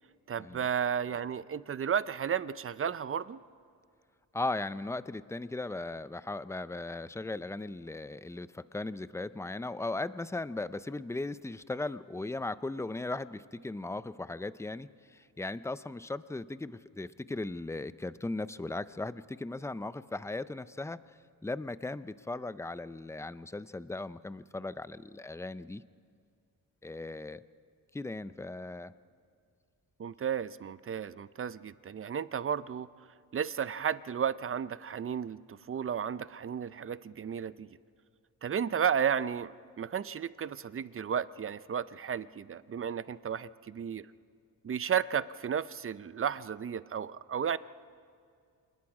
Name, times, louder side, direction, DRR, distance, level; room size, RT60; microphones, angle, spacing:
voice 1, 0.3-3.4 30.0-32.9 33.3-37.7 38.4-44.1 44.6-47.6, right 8 dB, 40° right, 16 dB, 0.5 m, -33 dB
voice 2, 4.3-21.0 21.4-25.8 26.8-27.4 27.9-28.9, left 2 dB, 10° left, 15 dB, 0.5 m, -37 dB
27.0 x 20.0 x 4.9 m, 2.3 s
cardioid pair, 100°, 35 cm